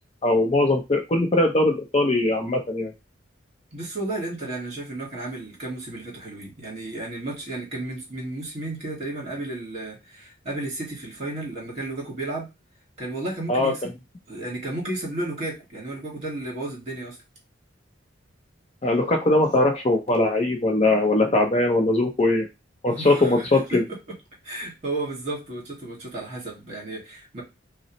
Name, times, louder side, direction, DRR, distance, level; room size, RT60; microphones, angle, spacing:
voice 1, 0.2-2.9 13.5-13.7 18.8-22.5 22.8-23.8, left 2 dB, 30° left, 0.6 m, -21 dB
voice 2, 3.7-12.5 13.0-13.8 14.3-17.2 22.9-24.2 24.4-27.4, right 2 dB, 30° right, 2.1 m, -33 dB
5.3 x 2.0 x 3.0 m
head